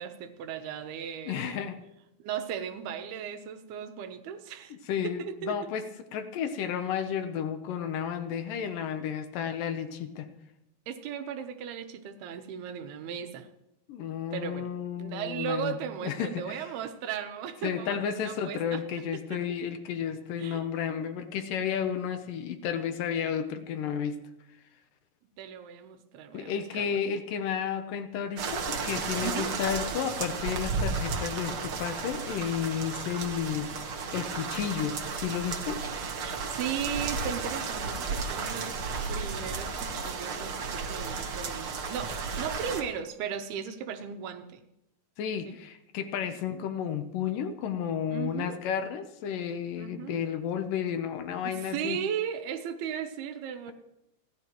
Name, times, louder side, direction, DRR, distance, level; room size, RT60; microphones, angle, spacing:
voice 1, 0.0-1.7 2.2-4.8 5.0-5.7 10.9-13.5 14.3-14.7 15.0-19.0 19.3-19.4 20.4-20.7 25.4-27.0 29.2-29.6 36.2-38.7 39.1-44.6 45.5-45.6 46.3-46.6 48.1-48.6 49.8-50.2 51.4-53.7, right 8 dB, 90° right, 8 dB, 3.0 m, -37 dB
voice 2, 1.3-1.8 4.7-5.9 6.1-10.3 13.9-15.8 16.0-16.7 17.6-24.2 26.3-35.8 45.2-52.0, left 8 dB, 70° left, 8 dB, 2.3 m, -32 dB
sound 1, 28.4-42.8, right 4 dB, 60° right, 1.4 m, -33 dB
30.0 x 11.5 x 3.0 m, 0.87 s
omnidirectional pair, 4.4 m